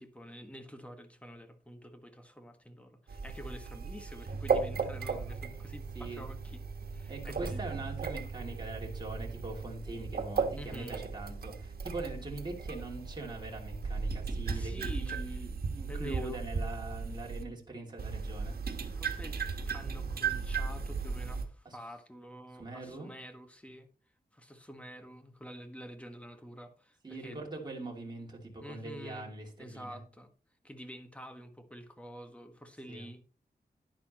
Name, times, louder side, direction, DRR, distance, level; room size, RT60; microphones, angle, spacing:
voice 1, 0.0-6.6 6.9-7.6 10.5-11.0 14.5-15.4 15.9-16.4 18.9-23.9 24.3-27.4 28.6-29.3 29.6-30.3 30.6-33.2, equal, 10° left, 6 dB, 1.5 m, -48 dB
sound 1, 3.1-17.4 18.0-21.4, right 5 dB, 75° right, 1.5 m, -36 dB
voice 2, 5.9-6.3 7.1-18.6 21.6-21.8 22.5-23.1 27.0-30.0 32.9-33.1, right 2 dB, 25° right, -1 dB, 2.7 m, -42 dB
11.0 x 10.5 x 3.0 m, 0.37 s
wide cardioid pair, 130°, 16 cm